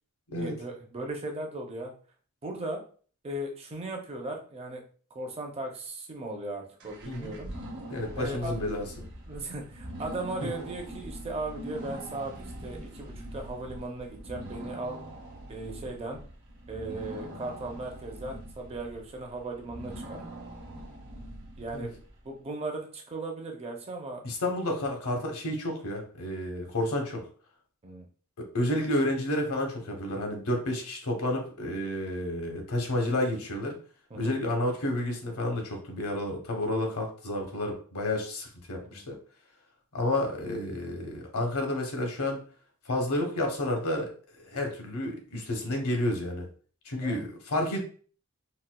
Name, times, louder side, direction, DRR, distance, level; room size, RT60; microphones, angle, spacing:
voice 1, 0.4-1.9 2.4-2.8 3.2-4.8 5.1-7.5 8.2-8.6 9.3-15.0 15.5-16.2 16.7-20.2 21.6-24.2 27.8-28.1 34.1-34.3 38.8-39.1 47.0-47.3, right 2 dB, 25° right, 2 dB, 0.5 m, -37 dB
sound 1, 6.8-22.2, right 1 dB, 55° right, 0.9 m, -43 dB
voice 2, 7.9-9.1 21.7-21.9 24.2-27.3 28.4-33.8 34.1-39.2 39.9-42.4 42.9-44.1 44.4-46.5 46.8-47.8, left 1 dB, 70° left, 3 dB, 0.8 m, -30 dB
4.1 x 2.2 x 2.2 m, 0.42 s
head